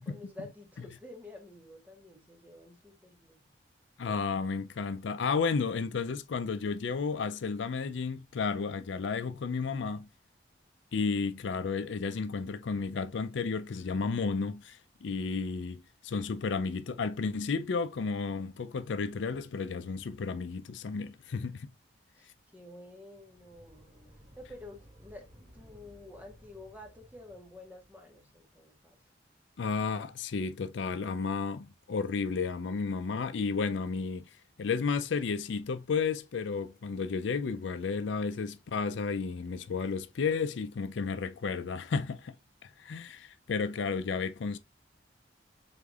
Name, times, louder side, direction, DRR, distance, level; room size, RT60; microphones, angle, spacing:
voice 1, 0.0-3.5 22.1-23.9 24.4-29.0, left 2 dB, 10° right, 1.3 m, -50 dB
voice 2, 4.0-10.1 10.9-21.7 29.6-34.3 34.6-42.4 42.6-44.6, left 5 dB, 75° left, 0.4 m, -32 dB
sound 1, 23.1-28.3, equal, 35° right, 1.3 m, -57 dB
5.0 x 3.6 x 2.4 m
head